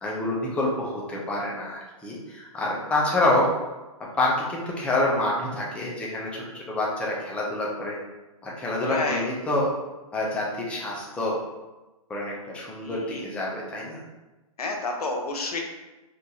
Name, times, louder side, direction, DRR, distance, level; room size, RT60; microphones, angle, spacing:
voice 1, 0.0-3.5 4.2-8.0 8.4-9.7 10.1-11.4 12.1-14.0, left 2 dB, 5° left, -4 dB, 0.5 m, -27 dB
voice 2, 8.8-9.3 12.8-13.3 14.6-15.6, left 3 dB, 85° left, 1 dB, 0.8 m, -30 dB
2.9 x 2.5 x 3.7 m, 1.1 s
hypercardioid pair, 140°, 19 cm